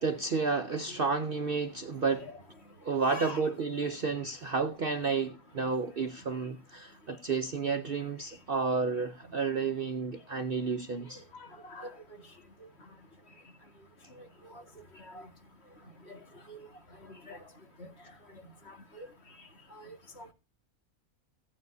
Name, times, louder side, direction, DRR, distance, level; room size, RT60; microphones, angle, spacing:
voice 1, 0.0-2.3 2.8-11.2, right 4 dB, 50° right, 0.7 m, -31 dB
voice 2, 3.0-3.4 11.4-11.9 14.5-14.6 15.1-15.2 16.1-16.2 16.5-16.6 17.1-17.4 19.0-19.1 19.8-20.3, left 2 dB, 45° left, 2.2 m, -43 dB
15.5 x 9.4 x 2.7 m
omnidirectional pair, 1.5 m